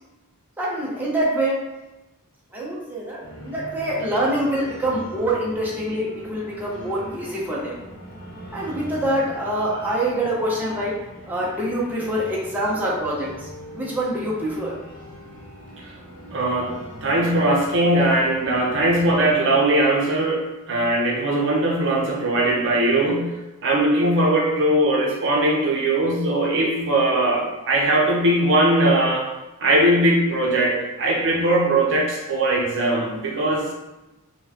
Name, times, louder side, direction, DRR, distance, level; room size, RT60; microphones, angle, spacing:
voice 1, 0.6-1.6 2.5-7.8 8.5-10.9 11.3-14.7, right 1 dB, 10° right, -5 dB, 0.6 m, -25 dB
sound 1, 3.2-19.3, right 1 dB, 20° left, 1.4 m, -41 dB
voice 2, 16.3-23.3 23.6-29.3 29.6-33.7, right 1 dB, 55° right, -1 dB, 0.6 m, -20 dB
4.2 x 2.2 x 2.8 m, 1.0 s
head